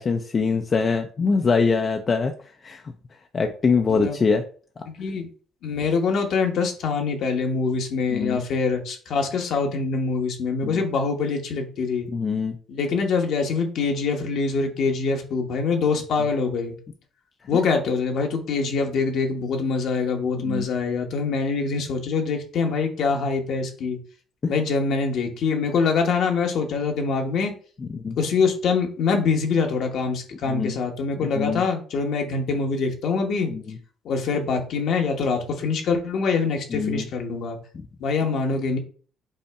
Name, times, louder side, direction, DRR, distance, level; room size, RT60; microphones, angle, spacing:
voice 1, 0.0-2.3 2.6-2.8 3.3-4.4 8.1-8.4 10.6-10.8 12.1-12.6 20.4-20.7 24.4-24.5 27.9-28.2 30.5-30.8 31.4-31.6 33.5-33.8 36.7-37.1, left 5 dB, 40° left, 4 dB, 0.5 m, -23 dB
voice 2, 4.9-5.3 5.6-12.1 12.7-16.7 17.5-24.0 24.5-27.5 28.2-33.5 34.0-37.6 38.0-38.8, left 4 dB, 65° left, 3 dB, 1.2 m, -24 dB
5.4 x 2.1 x 4.7 m, 0.41 s
cardioid pair, 85°, 0 cm